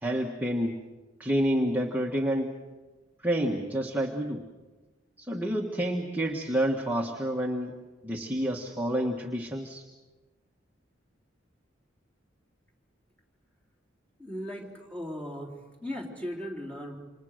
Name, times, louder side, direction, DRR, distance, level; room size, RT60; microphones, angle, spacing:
voice 1, 0.0-0.8 1.2-2.6 3.2-4.4 5.2-7.7 8.0-9.8, equal, 10° right, 0 dB, 1.5 m, -29 dB
voice 2, 14.2-15.5 15.8-17.0, equal, 5° left, -2 dB, 3.8 m, -37 dB
28.0 x 26.5 x 6.6 m, 1.2 s
head